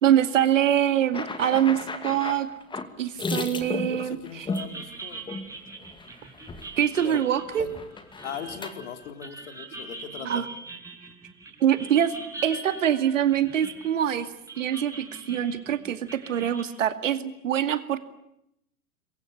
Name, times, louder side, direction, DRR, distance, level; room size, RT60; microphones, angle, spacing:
voice 1, 0.0-2.5 3.0-4.5 6.8-7.7 10.2-10.4 11.6-12.1 12.4-14.3 14.6-18.0, right 10 dB, 60° right, 10 dB, 2.3 m, -24 dB
sound 1, 1.1-4.7 5.3-5.5 5.8-6.1 6.3-7.1 7.5-8.7, left 3 dB, 10° left, 2.2 m, -34 dB
voice 2, 3.8-5.2 7.0-7.2 7.6-7.8 8.2-10.5, left 8 dB, 55° left, 7 dB, 3.6 m, -39 dB
sound 2, 4.5-16.6, right 3 dB, 5° right, 5.8 m, -42 dB
28.5 x 23.0 x 8.5 m, 0.80 s
figure-of-eight pair, 100°, 43 cm